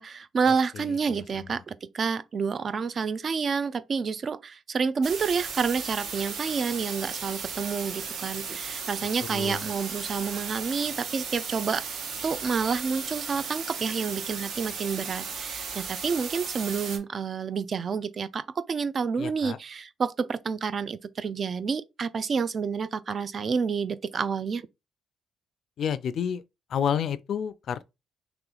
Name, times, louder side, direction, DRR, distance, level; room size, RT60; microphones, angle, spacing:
voice 1, 0.0-11.9 12.2-24.7, right 5 dB, 45° right, 0.4 m, -29 dB
sound 1, 5.0-17.0, right 6 dB, 70° right, 0.9 m, -36 dB
voice 2, 9.3-9.7 19.2-19.6 25.8-26.4 26.7-27.8, left 8 dB, 65° left, 0.3 m, -29 dB
3.0 x 2.9 x 3.8 m
cardioid pair, 90°, 0 cm